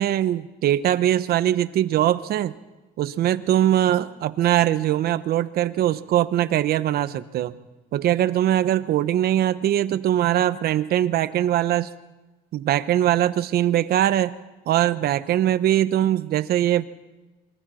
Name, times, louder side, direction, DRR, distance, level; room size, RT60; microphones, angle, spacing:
voice 1, 0.0-2.5 3.0-7.5 7.9-11.9 12.5-14.3 14.7-16.8, right 12 dB, 65° right, 12 dB, 1.0 m, -21 dB
27.0 x 23.0 x 4.4 m, 1.1 s
cardioid pair, 110°, 17 cm